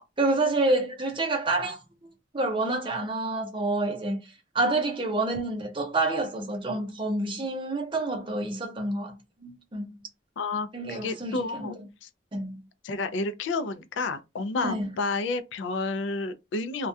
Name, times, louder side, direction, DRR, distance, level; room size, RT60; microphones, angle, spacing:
voice 1, 0.2-1.8 2.3-4.2 4.5-9.1 9.4-10.0 10.7-11.7 12.3-12.6 14.6-14.9, right 2 dB, 25° right, 0.6 m, -28 dB
voice 2, 10.4-12.1 12.8-16.9, left 3 dB, 80° left, 0.4 m, -30 dB
2.3 x 2.2 x 2.6 m
head